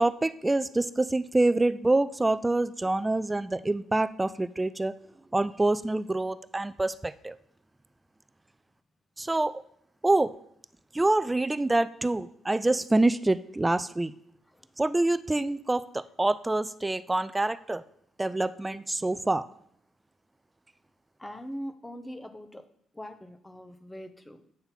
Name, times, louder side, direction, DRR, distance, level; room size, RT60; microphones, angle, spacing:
voice 1, 0.0-4.9 5.3-7.4 9.2-9.5 10.0-10.3 10.9-14.1 14.8-17.8 18.2-19.4, right 2 dB, 15° right, 15 dB, 0.3 m, -26 dB
voice 2, 21.2-22.7 22.9-24.4, equal, 10° left, 10 dB, 0.8 m, -41 dB
8.6 x 3.9 x 5.7 m, 0.69 s
cardioid pair, 90°, 0 cm